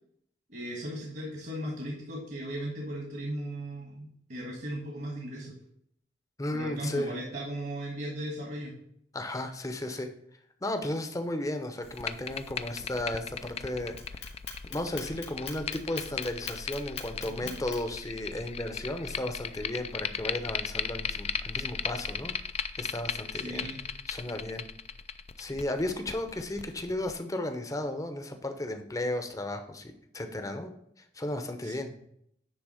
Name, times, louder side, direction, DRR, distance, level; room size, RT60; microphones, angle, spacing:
voice 1, 0.5-5.5 6.5-8.7 17.3-17.6 23.3-23.8 31.6-31.7, right 1 dB, 55° right, -1 dB, 1.6 m, -37 dB
voice 2, 6.4-7.1 9.1-10.1 10.6-14.3 14.7-22.3 22.8-23.7 24.1-24.6 25.4-30.7 31.1-31.9, left 1 dB, 20° left, 7 dB, 0.7 m, -34 dB
sound 1, 11.8-27.1, left 7 dB, 35° left, 0.3 m, -37 dB
Clock, 14.0-18.0, left 7 dB, 75° left, 2.0 m, -41 dB
9.9 x 3.5 x 4.9 m, 0.70 s
head